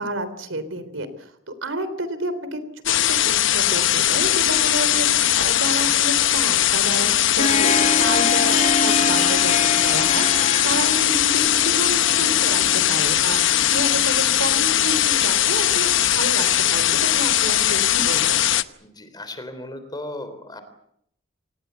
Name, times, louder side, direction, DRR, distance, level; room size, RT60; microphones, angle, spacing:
voice 1, 0.0-2.6 2.8-18.4, right 1 dB, 75° right, 13 dB, 3.5 m, -30 dB
sound 1, 2.9-18.6, left 12 dB, 70° left, 0.9 m, -20 dB
Harp, 7.1-14.8, left 4 dB, 35° left, 1.0 m, -27 dB
voice 2, 18.8-20.6, left 1 dB, 20° left, 10 dB, 3.6 m, -36 dB
26.5 x 19.0 x 8.2 m, 0.74 s
head